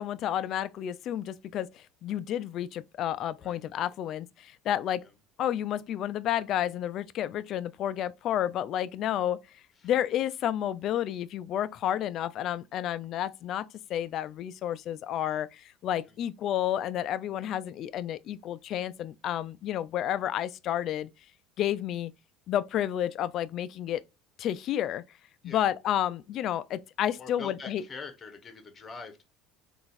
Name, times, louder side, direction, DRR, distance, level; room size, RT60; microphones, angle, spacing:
voice 1, 0.0-5.0 5.4-9.4 9.8-21.1 21.6-22.1 22.5-24.0 24.4-25.0 25.4-27.8, left 11 dB, 55° left, 0.3 m, -31 dB
voice 2, 27.2-29.2, left 4 dB, 30° left, 1.0 m, -44 dB
3.9 x 2.4 x 2.4 m
supercardioid pair, 85°, 0 cm